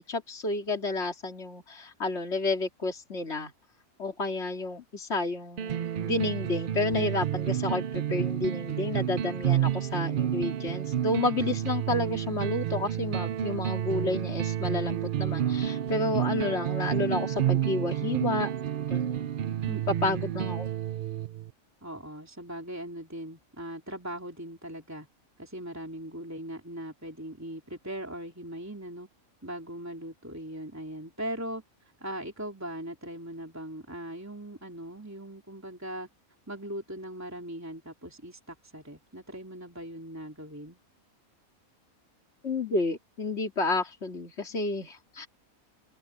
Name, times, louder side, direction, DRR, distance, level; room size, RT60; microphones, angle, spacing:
voice 1, 0.0-3.5 4.0-18.5 18.8-19.2 20.0-20.7 42.4-45.3, left 2 dB, 50° left, 3.3 m, -31 dB
sound 1, 5.6-21.5, right 10 dB, 60° right, 0.5 m, -30 dB
voice 2, 19.7-20.3 21.8-25.1 25.4-29.1 29.4-31.6 32.0-36.1 36.5-40.8, right 1 dB, 10° right, 3.3 m, -40 dB
open air
omnidirectional pair, 1.5 m